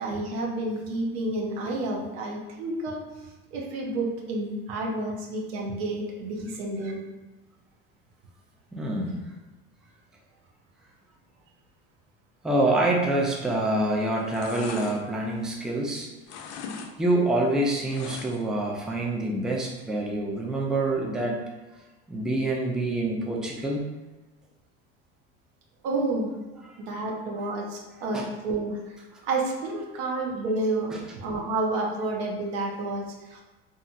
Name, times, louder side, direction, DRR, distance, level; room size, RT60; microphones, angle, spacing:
voice 1, 0.0-3.0 3.5-7.0 25.8-26.3 26.8-29.0 29.2-33.4, right 2 dB, 80° right, 0 dB, 0.7 m, -30 dB
voice 2, 8.7-9.3 12.4-16.1 17.0-21.5 22.1-23.9 28.1-28.3 30.9-31.0, right 1 dB, ahead, -1 dB, 0.4 m, -26 dB
sound 1, 13.5-13.8 14.1-15.9 16.2-16.9 17.2-18.6 19.0-19.1, left 6 dB, 60° left, 0.4 m, -40 dB
2.8 x 2.4 x 2.5 m, 1.1 s
supercardioid pair, 95°, 30 cm